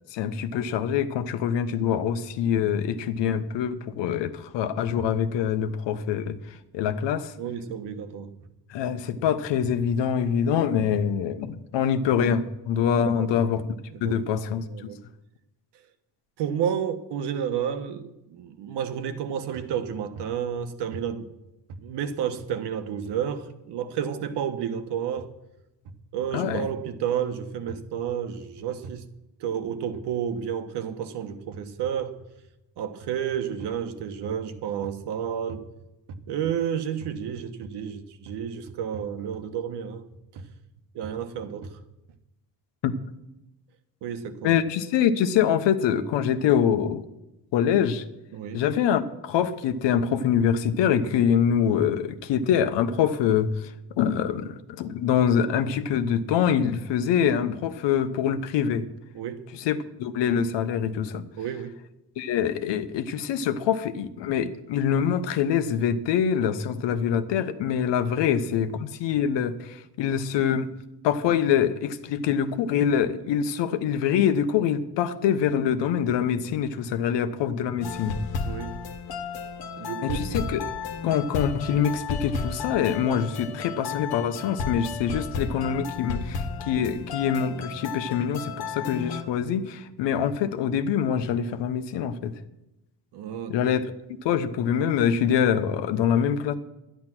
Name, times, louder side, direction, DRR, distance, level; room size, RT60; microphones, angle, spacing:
voice 1, 0.1-6.4 6.7-7.3 8.7-13.6 14.0-14.7 26.3-26.7 42.8-42.9 44.4-47.0 47.5-48.0 48.5-53.7 54.0-58.9 59.5-61.3 62.2-70.7 71.0-78.2 80.0-80.7 81.0-92.3 93.5-93.8 94.2-96.5, left 8 dB, 90° left, 1.1 m, -25 dB
voice 2, 7.4-8.4 13.0-13.6 13.9-14.2 14.6-15.0 16.4-18.0 18.3-21.3 21.8-25.3 26.1-29.1 29.4-32.2 32.8-35.6 36.1-40.1 40.3-40.4 40.9-41.8 44.0-44.6 48.3-48.6 59.1-59.4 61.4-61.8 68.2-68.3 78.4-78.8 79.8-80.4 93.1-93.8, right 8 dB, 75° right, 1.3 m, -31 dB
sound 1, 77.8-89.2, left 5 dB, 60° left, 1.5 m, -33 dB
12.0 x 10.5 x 6.1 m
cardioid pair, 150°, 41 cm